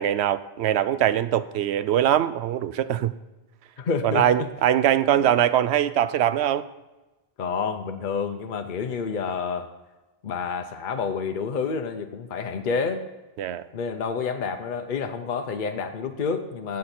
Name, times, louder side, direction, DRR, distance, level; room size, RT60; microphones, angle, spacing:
voice 1, 0.0-3.1 4.0-6.7 13.4-13.7, right 11 dB, 80° right, 14 dB, 0.8 m, -22 dB
voice 2, 3.8-4.5 7.4-9.7 10.2-13.1 13.7-16.8, left 5 dB, 50° left, 6 dB, 0.8 m, -29 dB
17.0 x 6.5 x 4.3 m, 1.1 s
omnidirectional pair, 1.1 m